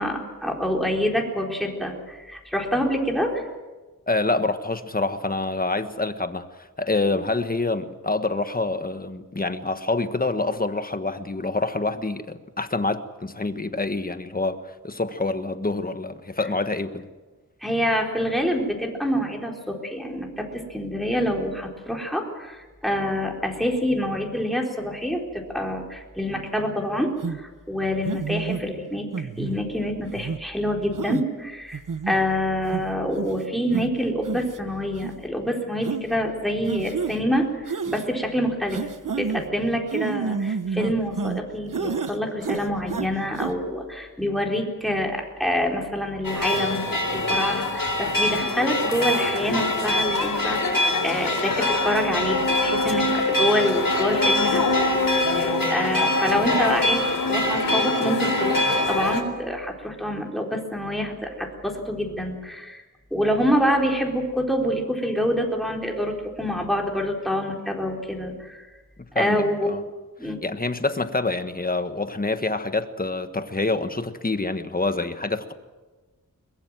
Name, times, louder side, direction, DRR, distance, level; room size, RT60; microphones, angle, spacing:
voice 1, 0.0-3.5 17.6-31.8 32.1-62.8 63.1-68.7 69.1-69.7 70.2-70.4, equal, ahead, 4.1 m, -26 dB
voice 2, 4.1-17.1 69.0-69.8 70.4-75.5, left 3 dB, 25° left, 1.4 m, -26 dB
sound 1, 27.2-27.4 28.1-28.6 29.1-29.6 30.2-30.4 31.0-31.2 31.7-32.2 32.7-32.8 33.2-33.4 33.7-33.8 34.2-34.6 35.0-35.1 35.8-36.0 36.7-37.2 37.7-38.1 38.7-39.4 39.9-41.4 41.7-42.2 42.4-43.1 43.4-43.5, right 5 dB, 65° right, 1.2 m, -29 dB
sound 2, 46.2-59.2, left 2 dB, 75° left, 3.8 m, -23 dB
22.5 x 21.5 x 7.6 m
wide cardioid pair, 105°, 34 cm